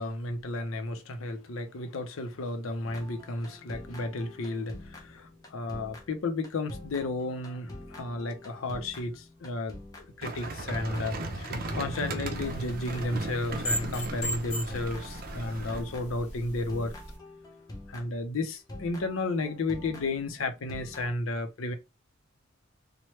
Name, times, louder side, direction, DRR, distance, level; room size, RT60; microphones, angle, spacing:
voice 1, 0.0-16.9 17.9-21.7, left 2 dB, 75° left, 0.6 m, -33 dB
sound 1, 2.8-18.3 18.7-21.2, left 1 dB, 15° left, 0.5 m, -46 dB
sound 2, 10.2-15.8, right 2 dB, 45° right, 0.5 m, -37 dB
sound 3, 12.3-17.2, equal, 35° left, 1.0 m, -38 dB
2.9 x 2.2 x 3.1 m
head